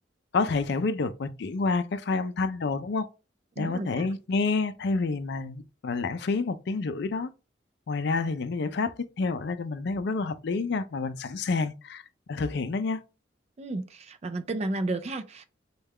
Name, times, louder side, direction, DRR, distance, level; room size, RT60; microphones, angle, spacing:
voice 1, 0.3-3.1 3.6-7.3 7.9-12.0 12.3-13.0, left 4 dB, 60° left, 0.4 m, -28 dB
voice 2, 3.6-4.1 13.6-15.5, right 2 dB, 35° right, 0.4 m, -32 dB
3.2 x 2.3 x 3.5 m
head